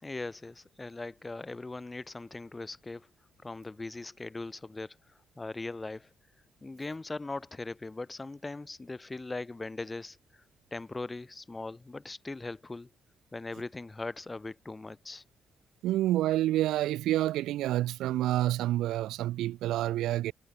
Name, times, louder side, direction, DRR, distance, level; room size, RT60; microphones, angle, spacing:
voice 1, 0.0-3.1 3.4-5.0 5.4-6.1 6.6-10.4 10.7-12.9 13.3-15.2, left 3 dB, 20° left, 3.4 m, -40 dB
voice 2, 15.8-20.3, right 14 dB, 85° right, 1.6 m, -28 dB
cardioid pair, 90°, 0 cm